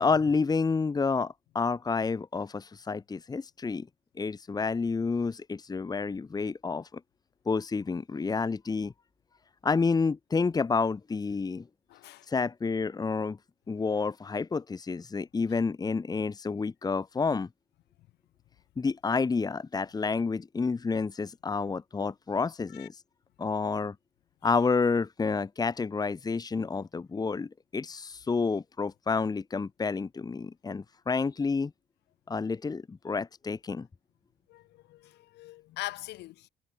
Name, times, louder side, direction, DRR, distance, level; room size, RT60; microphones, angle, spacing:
voice 1, 0.0-3.9 4.2-7.0 7.5-8.9 9.6-11.7 12.3-13.4 13.7-17.5 18.8-23.0 23.4-24.0 24.4-31.7 32.3-33.9, left 4 dB, 25° left, 1.8 m, -29 dB
voice 2, 11.9-12.3 22.7-22.9 34.5-36.5, left 17 dB, 80° left, 6.9 m, -42 dB
cardioid pair, 110°, 17 cm